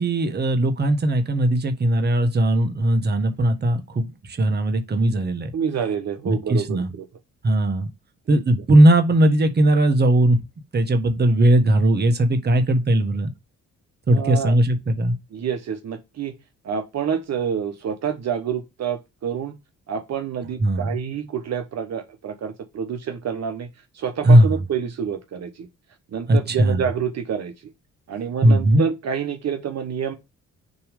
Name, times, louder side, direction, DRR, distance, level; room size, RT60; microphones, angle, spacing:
voice 1, 0.0-5.5 6.2-6.9 7.4-7.9 8.3-10.4 10.7-13.3 14.1-15.1 20.6-20.9 24.2-24.5 26.3-26.8 28.4-28.8, right 1 dB, 35° right, 1.3 m, -18 dB
voice 2, 5.5-7.1 8.3-8.4 14.1-14.6 15.3-16.3 16.6-19.5 19.9-23.7 23.9-25.7 26.1-27.5 28.1-30.1, right 7 dB, 60° right, 1.1 m, -28 dB
6.8 x 3.1 x 5.1 m
cardioid pair, 90°, 30 cm